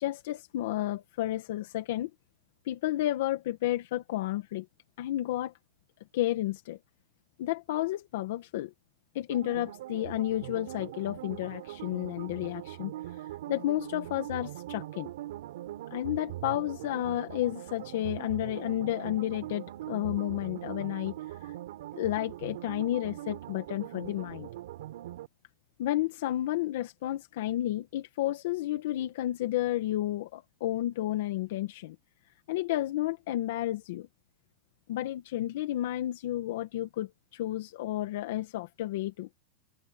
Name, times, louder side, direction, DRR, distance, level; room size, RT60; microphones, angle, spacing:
voice 1, 0.0-2.1 2.7-4.7 5.0-5.5 6.1-6.8 7.4-8.7 9.1-12.9 13.5-15.1 15.9-21.2 21.9-24.5 25.8-32.0 32.5-34.1 34.9-39.3, left 14 dB, 60° left, 1.8 m, -31 dB
sound 1, 9.3-25.3, right 14 dB, 70° right, 4.2 m, -41 dB
supercardioid pair, 170°, 0 cm